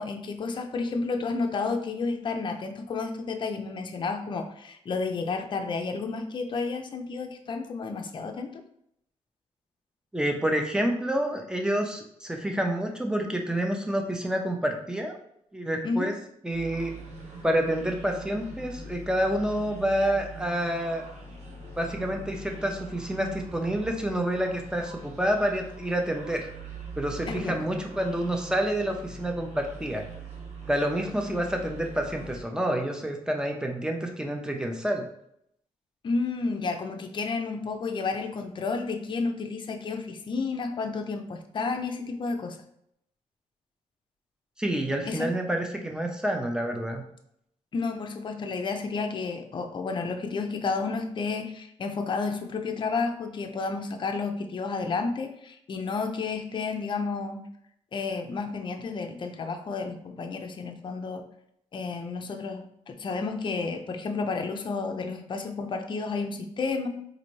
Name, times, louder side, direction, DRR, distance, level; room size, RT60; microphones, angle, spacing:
voice 1, 0.0-8.6 15.8-16.1 27.3-27.7 36.0-42.6 45.0-45.3 47.7-57.5 57.9-61.3 61.7-66.9, left 4 dB, 40° left, 5 dB, 0.5 m, -31 dB
voice 2, 10.1-15.2 15.5-16.1 16.4-16.9 17.4-21.0 21.7-26.4 27.0-30.0 30.7-35.1 44.6-47.0, right 1 dB, 5° right, 3 dB, 0.6 m, -28 dB
sound 1, 16.5-32.4, right 2 dB, 65° right, 0.9 m, -43 dB
3.9 x 2.6 x 3.1 m, 0.74 s
cardioid pair, 85°, 12 cm